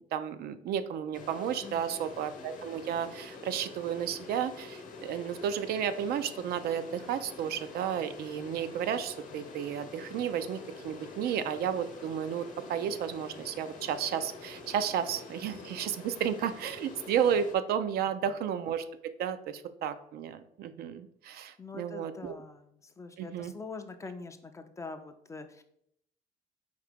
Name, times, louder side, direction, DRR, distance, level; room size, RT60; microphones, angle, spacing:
voice 1, 0.1-18.8 19.2-22.3 23.2-23.5, right 8 dB, 70° right, 11 dB, 0.4 m, -32 dB
sound 1, 1.1-17.6, left 3 dB, 50° left, 0.9 m, -46 dB
voice 2, 1.6-2.1 18.2-18.4 21.6-25.6, left 3 dB, 20° left, 8 dB, 0.4 m, -44 dB
4.8 x 2.8 x 3.5 m, 0.73 s
cardioid pair, 110°, 17 cm